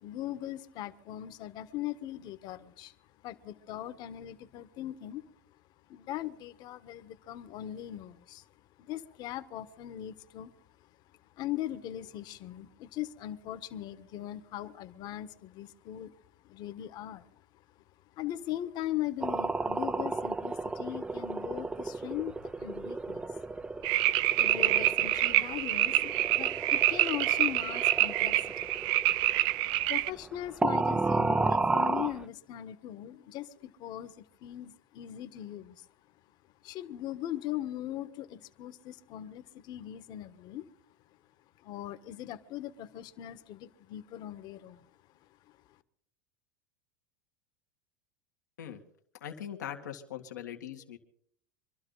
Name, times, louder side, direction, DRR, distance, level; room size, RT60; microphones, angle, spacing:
voice 1, 0.0-2.9 3.2-5.2 5.9-8.4 8.8-10.5 11.4-16.2 16.4-17.3 18.2-23.3 24.4-28.7 29.9-35.9 36.6-40.6 41.6-44.8, left 13 dB, 50° left, 11 dB, 1.3 m, -39 dB
sound 1, 19.2-30.4 30.6-32.2, right 3 dB, 10° right, 0.5 m, -33 dB
sound 2, 23.8-30.1, right 15 dB, 55° right, 0.5 m, -27 dB
voice 2, 49.2-51.0, left 9 dB, 90° left, 4 dB, 1.9 m, -41 dB
25.0 x 12.5 x 4.0 m, 0.63 s
hypercardioid pair, 105°, 9 cm